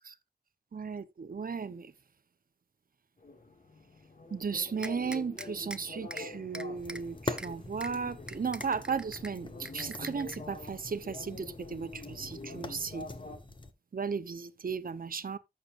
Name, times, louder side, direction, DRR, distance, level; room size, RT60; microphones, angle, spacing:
voice 1, 0.7-1.9 4.3-13.1 13.9-15.4, right 5 dB, 60° right, 0.9 m, -35 dB
sound 1, 3.2-13.4, left 2 dB, 50° left, 2.1 m, -47 dB
sound 2, 4.8-5.8 6.1-6.2 6.5-7.0 7.4-7.5 7.8-7.9 8.3-9.3 9.7-10.4, right 1 dB, 5° right, 0.6 m, -41 dB
sound 3, 6.7-13.7, left 2 dB, 30° left, 1.1 m, -44 dB
14.5 x 6.8 x 2.6 m
wide cardioid pair, 110°, 16 cm